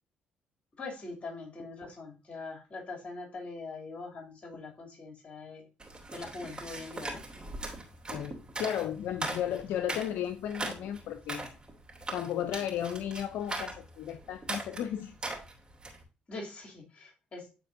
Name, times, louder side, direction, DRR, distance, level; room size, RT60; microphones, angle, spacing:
voice 1, 0.8-5.7 6.1-7.2 16.3-17.5, left 3 dB, 40° left, 1 dB, 2.9 m, -42 dB
sound 1, 5.8-16.0, right 2 dB, 30° right, 2.9 m, -40 dB
voice 2, 8.1-11.5 12.1-15.2, left 10 dB, 80° left, 10 dB, 0.5 m, -34 dB
13.0 x 4.3 x 2.7 m, 0.32 s
supercardioid pair, 65°, 3 cm